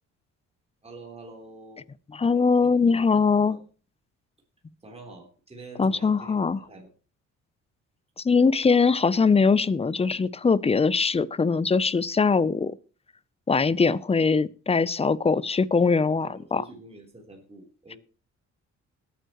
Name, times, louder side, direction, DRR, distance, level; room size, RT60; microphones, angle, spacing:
voice 1, 0.8-1.8 2.6-2.8 3.5-3.6 4.8-6.9 16.2-18.0, right 2 dB, 20° right, 3.7 m, -46 dB
voice 2, 2.1-3.6 5.8-6.6 8.2-12.8 13.5-16.6, left 4 dB, 20° left, 0.6 m, -22 dB
20.5 x 9.4 x 3.1 m
cardioid pair, 90°, 30 cm